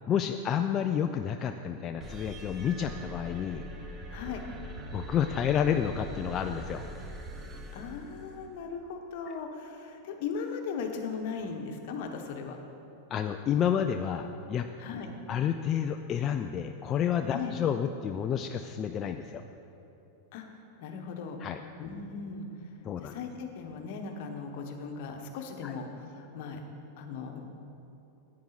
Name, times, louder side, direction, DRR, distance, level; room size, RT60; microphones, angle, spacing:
voice 1, 0.0-3.6 4.9-6.8 13.1-14.7 15.3-19.4 21.4-21.6 22.8-23.1 25.6-25.7, left 8 dB, 35° left, 6 dB, 0.4 m, -30 dB
sound 1, 2.0-8.6, right 1 dB, 25° right, 1.3 m, -43 dB
voice 2, 4.1-4.5 7.7-12.6 14.8-15.1 17.3-17.5 20.3-20.5 20.8-21.4 21.8-22.5 23.0-26.6 27.0-27.4, left 5 dB, 60° left, 4 dB, 1.2 m, -38 dB
10.5 x 8.6 x 4.0 m, 2.9 s
hypercardioid pair, 115°, 0 cm